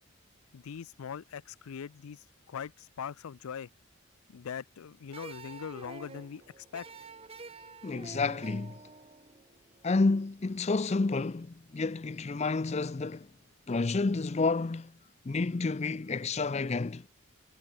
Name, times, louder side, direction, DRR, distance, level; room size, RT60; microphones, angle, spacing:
voice 1, 0.5-2.2 2.5-3.7 4.3-6.9, left 7 dB, 85° left, 0.4 m, -41 dB
sound 1, 5.1-10.2, right 3 dB, 25° right, 1.1 m, -48 dB
voice 2, 7.8-8.8 9.8-13.3 13.7-14.9 15.2-17.1, left 3 dB, 30° left, 0.4 m, -30 dB
head